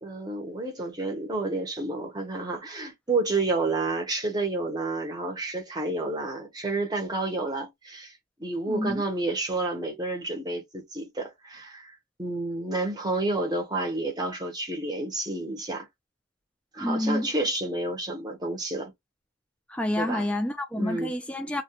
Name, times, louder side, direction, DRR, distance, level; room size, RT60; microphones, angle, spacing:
voice 1, 0.0-8.1 8.4-11.9 12.2-15.9 16.7-18.9 20.0-20.2 20.8-21.1, right 2 dB, 20° right, 0.8 m, -30 dB
voice 2, 8.7-9.0 16.8-17.3 19.7-21.6, left 1 dB, 5° left, 0.4 m, -28 dB
2.3 x 2.2 x 2.8 m
head